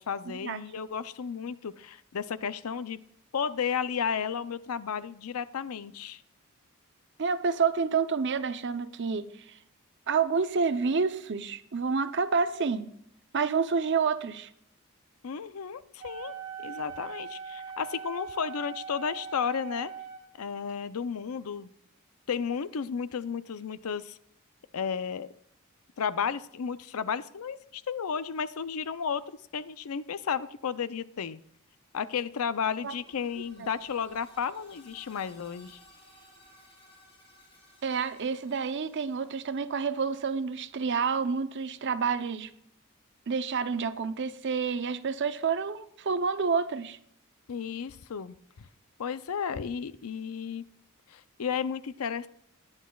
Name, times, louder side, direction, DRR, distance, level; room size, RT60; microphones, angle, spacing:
voice 1, 0.0-3.0 3.3-6.2 15.2-16.3 16.6-19.9 20.4-21.7 22.3-24.2 24.7-25.3 26.0-29.2 29.5-31.4 31.9-35.8 47.5-48.7 49.0-50.6 51.1-52.3, left 6 dB, 80° left, 15 dB, 0.5 m, -33 dB
voice 2, 7.2-9.6 10.1-12.9 13.3-14.5 32.8-32.9 33.6-33.7 37.8-42.5 43.3-47.0, right 5 dB, 55° right, 12 dB, 0.6 m, -29 dB
Wind instrument woodwind instrument, 16.0-20.2, right 6 dB, 35° right, 3.3 m, -41 dB
sound 1, 32.5-40.3, left 1 dB, 25° left, 5.0 m, -58 dB
19.5 x 9.6 x 2.3 m, 0.70 s
head